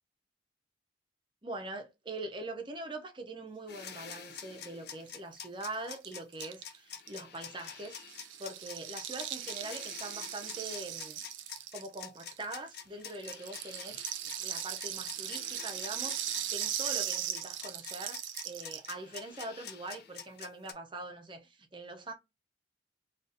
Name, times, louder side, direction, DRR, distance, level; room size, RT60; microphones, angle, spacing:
voice 1, 1.4-11.2 11.7-22.1, right 2 dB, 25° right, 0.6 m, -43 dB
sound 1, 3.7-20.7, left 7 dB, 55° left, 0.5 m, -47 dB
Rattle (instrument), 5.1-5.2 5.3-5.4 5.6-12.8 13.1-18.9, right 11 dB, 80° right, 0.4 m, -38 dB
3.8 x 2.4 x 2.6 m
head